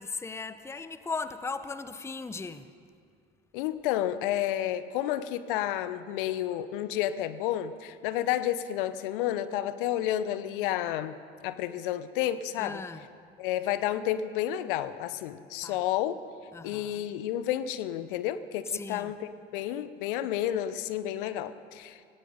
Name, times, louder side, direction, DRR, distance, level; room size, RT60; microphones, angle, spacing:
voice 1, 0.0-2.7 12.6-13.0 15.6-15.8 16.5-17.0 18.7-19.1, left 4 dB, 10° left, 12 dB, 0.7 m, -37 dB
voice 2, 3.5-11.1 11.4-12.8 13.4-16.2 16.6-22.0, left 12 dB, 65° left, 14 dB, 0.9 m, -31 dB
17.0 x 16.5 x 5.1 m, 2.2 s
figure-of-eight pair, 70°, 29 cm